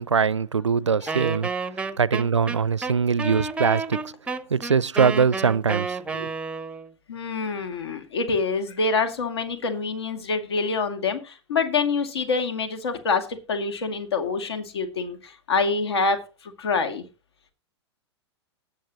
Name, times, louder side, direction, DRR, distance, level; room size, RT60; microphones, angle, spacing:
voice 1, 0.0-1.5 1.9-4.1 4.5-6.3, right 6 dB, 85° right, 0.4 m, -22 dB
Wind instrument woodwind instrument, 1.1-6.9, right 4 dB, 5° right, 0.7 m, -30 dB
voice 2, 7.1-15.2 15.5-16.2 16.6-17.0, left 4 dB, 65° left, 2.2 m, -26 dB
18.5 x 7.4 x 2.9 m
figure-of-eight pair, 100°, 15 cm